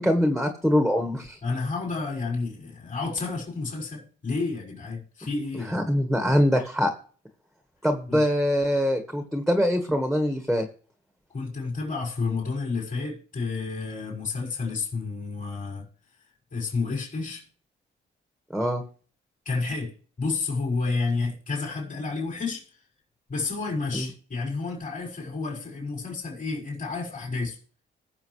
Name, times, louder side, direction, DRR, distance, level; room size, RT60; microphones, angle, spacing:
voice 1, 0.0-1.4 5.7-6.9 7.8-10.7 18.5-18.8 23.9-24.1, equal, ahead, 1.5 m, -23 dB
voice 2, 1.4-5.8 8.1-8.2 11.3-15.8 16.5-17.5 19.5-19.9 20.2-22.7 23.3-27.6, left 4 dB, 40° left, 5.7 m, -30 dB
20.5 x 6.8 x 3.3 m
cardioid pair, 90°, 20 cm